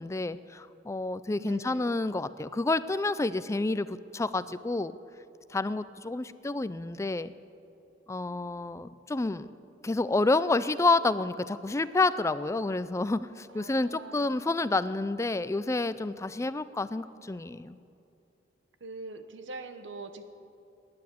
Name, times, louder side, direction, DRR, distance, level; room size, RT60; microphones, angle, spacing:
voice 1, 0.0-4.9 5.5-7.3 8.1-9.5 9.8-17.8, left 2 dB, 15° left, 15 dB, 0.4 m, -29 dB
voice 2, 1.4-2.0 13.5-14.4 18.8-20.2, right 3 dB, 75° right, 9 dB, 1.1 m, -43 dB
15.5 x 10.5 x 8.5 m, 2.6 s
head